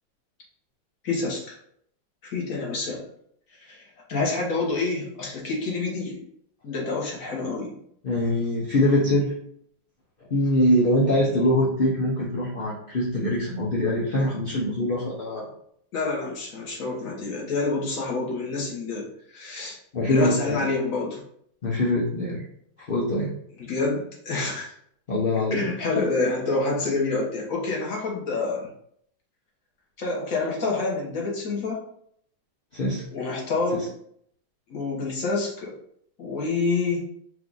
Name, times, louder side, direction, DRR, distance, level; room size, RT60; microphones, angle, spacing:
voice 1, 1.0-1.6 2.2-3.0 3.6-3.8 4.1-6.2 6.6-7.7 15.9-19.1 19.3-19.8 20.1-21.2 23.6-24.7 25.5-28.7 30.0-31.8 33.1-33.8 34.7-35.7 36.2-37.0, left 3 dB, 50° left, -2 dB, 1.4 m, -27 dB
voice 2, 8.0-9.4 10.3-15.5 19.9-20.6 21.6-22.4 22.9-23.4 25.1-25.6 32.7-33.1 33.7-33.8, left 1 dB, 75° left, -5 dB, 0.5 m, -23 dB
4.6 x 2.5 x 3.9 m, 0.68 s
omnidirectional pair, 2.1 m